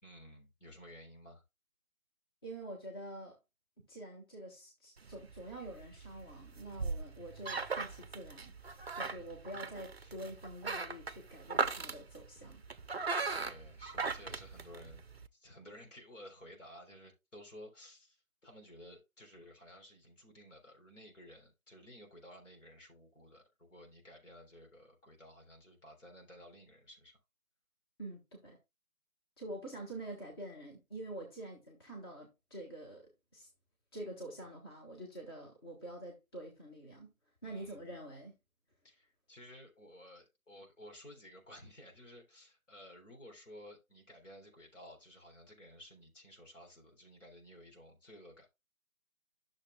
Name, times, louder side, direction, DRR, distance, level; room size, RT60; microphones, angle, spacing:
voice 1, 0.0-1.4 6.6-6.7 9.0-9.3 10.0-10.1 13.4-15.0 15.3-27.2 37.4-37.8 38.8-48.5, equal, 60° left, 3.7 m, -55 dB
voice 2, 2.4-3.4 3.9-8.5 8.9-12.6 28.0-28.6 29.4-33.5 33.9-37.1 37.4-38.4, right 1 dB, 15° left, 1.1 m, -46 dB
sound 1, 5.0-15.3, right 4 dB, 50° right, 0.5 m, -39 dB
11.5 x 6.5 x 2.2 m
figure-of-eight pair, 150°, 42 cm